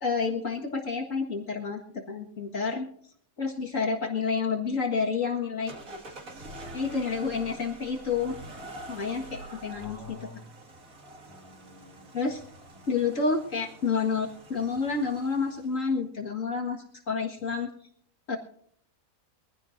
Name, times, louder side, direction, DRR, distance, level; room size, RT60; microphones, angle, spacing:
voice 1, 0.0-2.9 3.4-5.8 6.7-8.4 8.9-10.2 12.1-12.4 12.9-17.7 18.3-18.4, left 5 dB, 65° left, 0 dB, 2.1 m, -29 dB
sound 1, 5.7-15.9, right 1 dB, 70° right, 2.5 m, -46 dB
voice 2, 9.7-10.5 11.2-12.4 12.7-12.9, left 4 dB, 15° right, 0 dB, 6.1 m, -48 dB
22.5 x 15.5 x 2.6 m, 0.63 s
omnidirectional pair, 1.5 m